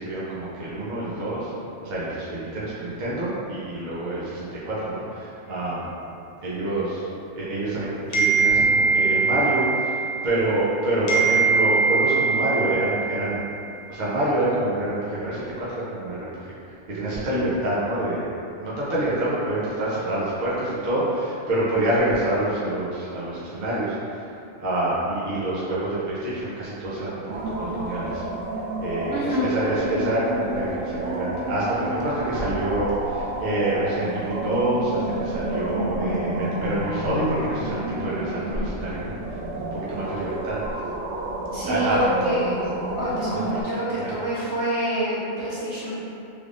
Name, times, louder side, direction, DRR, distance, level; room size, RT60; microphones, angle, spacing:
voice 1, 0.0-1.5 1.8-5.9 6.4-7.0 7.4-13.5 13.9-16.5 16.9-18.3 18.6-24.3 24.6-28.2 28.8-40.6 41.7-42.0 43.3-43.5 44.0-44.2, right 1 dB, 45° right, -9 dB, 0.7 m, -27 dB
sound 1, 8.1-10.7 11.1-13.6, right 4 dB, 85° left, 0.3 m, -22 dB
sound 2, 27.3-43.6, right 1 dB, 75° right, 0.9 m, -30 dB
voice 2, 29.1-29.5 41.5-42.6 43.0-46.0, equal, 60° right, -10 dB, 1.3 m, -27 dB
3.4 x 3.2 x 2.5 m, 2.6 s
omnidirectional pair, 1.3 m